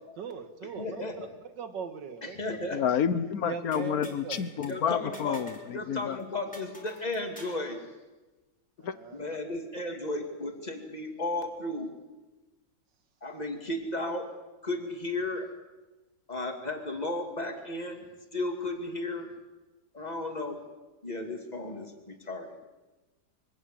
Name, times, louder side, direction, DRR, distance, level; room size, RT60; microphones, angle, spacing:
voice 1, 0.2-2.4 3.4-4.4 8.8-9.2, right 6 dB, 70° right, 9 dB, 2.2 m, -40 dB
voice 2, 0.8-1.3 2.2-2.9 4.7-5.4 5.7-7.8 9.1-11.9 13.2-14.3 14.6-15.5 16.3-18.0 18.3-19.3 19.9-20.6 21.0-22.6, left 2 dB, 20° left, 4 dB, 2.6 m, -34 dB
voice 3, 2.7-6.2 8.8-8.9, left 8 dB, 60° left, 14 dB, 1.3 m, -29 dB
sound 1, 3.7-4.8 5.1-5.7 6.0-6.1 6.5-7.7, equal, 5° left, 3.2 m, -47 dB
24.0 x 17.5 x 7.7 m, 1.2 s
omnidirectional pair, 2.0 m